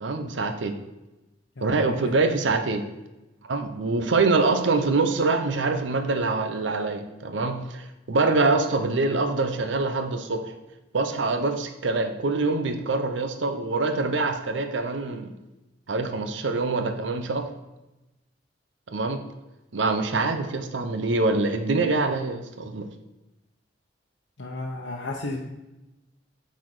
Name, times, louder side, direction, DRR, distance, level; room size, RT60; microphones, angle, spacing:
voice 1, 0.0-0.8 1.6-2.8 3.5-10.5 10.9-15.3 15.9-17.5 18.9-19.2 19.7-22.9, right 3 dB, 85° right, 7 dB, 0.7 m, -25 dB
voice 2, 24.4-25.5, left 2 dB, 85° left, -2 dB, 0.8 m, -33 dB
8.0 x 4.2 x 4.8 m, 1.0 s
head